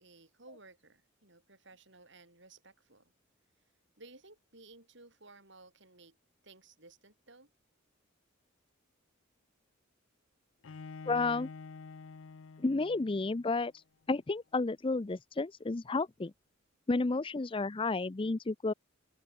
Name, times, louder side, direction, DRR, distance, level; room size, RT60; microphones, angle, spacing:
voice 1, 0.0-3.1 4.0-6.2 6.4-7.5, right 3 dB, 60° right, 7.3 m, -57 dB
Bowed string instrument, 10.6-13.6, left 4 dB, 70° left, 0.6 m, -48 dB
voice 2, 11.1-11.5 12.6-13.7 14.1-16.3 16.9-18.7, left 3 dB, 25° left, 0.5 m, -31 dB
open air
head